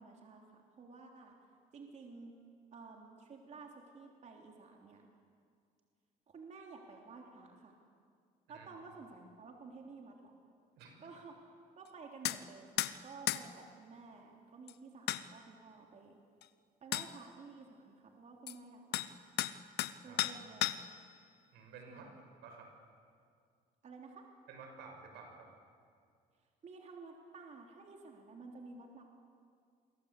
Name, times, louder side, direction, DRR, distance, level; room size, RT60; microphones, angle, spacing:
voice 1, 0.0-1.3 1.7-2.3 2.7-5.1 6.3-7.7 8.5-10.4 11.0-11.3 11.7-16.2 16.8-19.2 20.0-20.7 21.9-22.2 23.8-24.2 26.4-29.1, right 4 dB, 45° right, 1 dB, 3.4 m, -53 dB
voice 2, 10.8-11.1 20.1-20.2 21.5-22.1 22.4-22.7 24.5-25.5, right 5 dB, 85° right, 3 dB, 6.2 m, -52 dB
sound 1, 12.2-12.4 12.8-12.9 13.3-13.4 14.7-14.8 15.1-15.2 16.4-16.5 16.9-17.1 18.5-18.6 18.9-19.1 19.4-19.9 20.2-21.0, left 15 dB, 75° left, 1.0 m, -34 dB
28.0 x 23.0 x 8.4 m, 2.2 s
cardioid pair, 110°, 17 cm